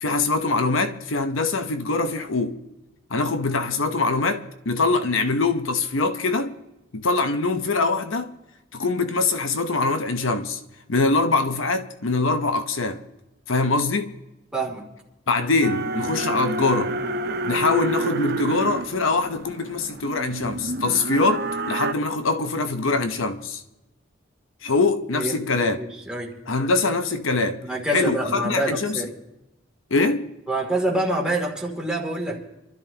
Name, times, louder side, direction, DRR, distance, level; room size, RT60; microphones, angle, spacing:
voice 1, 0.0-2.6 3.1-6.5 6.9-8.3 8.7-10.6 10.9-13.0 13.5-14.1 15.3-16.9 17.4-23.6 24.6-25.8 26.5-27.6 27.9-29.0 29.9-30.3, left 3 dB, 80° left, 0.9 m, -23 dB
voice 2, 14.5-14.9 25.1-25.5 25.8-26.3 27.6-29.1 30.5-32.4, right 1 dB, 5° right, 2.8 m, -26 dB
sound 1, 15.6-21.9, right 2 dB, 55° right, 0.9 m, -29 dB
26.5 x 13.0 x 2.9 m
head